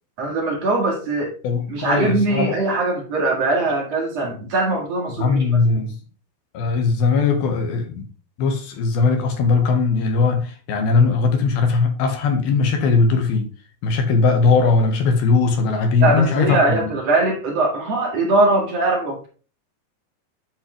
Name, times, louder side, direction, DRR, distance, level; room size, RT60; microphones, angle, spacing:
voice 1, 0.2-1.4 1.7-5.6 16.0-19.3, right 2 dB, 50° right, 2.7 m, -21 dB
voice 2, 1.4-2.5 5.2-5.9 6.5-8.0 8.4-13.5 13.8-16.9, left 4 dB, 80° left, 3.2 m, -19 dB
10.5 x 5.3 x 3.3 m
omnidirectional pair, 4.4 m